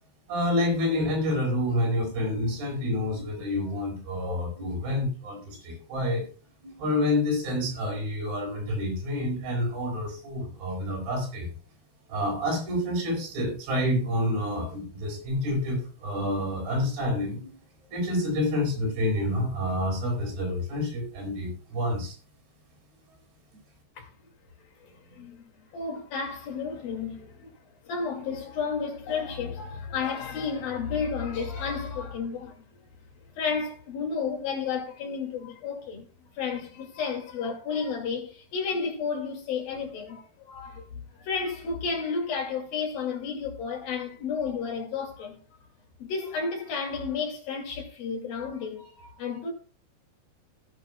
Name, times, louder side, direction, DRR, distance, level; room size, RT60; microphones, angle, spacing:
voice 1, 0.3-6.3 6.6-11.5 12.1-17.5 17.9-22.2, left 1 dB, 70° right, 7.6 m, -28 dB
voice 2, 24.8-25.4 25.7-27.6 27.8-32.6 33.4-36.0 36.4-40.8 41.2-45.4 46.0-49.5, left 5 dB, 60° left, 4.0 m, -32 dB
15.5 x 10.5 x 2.3 m
omnidirectional pair, 4.8 m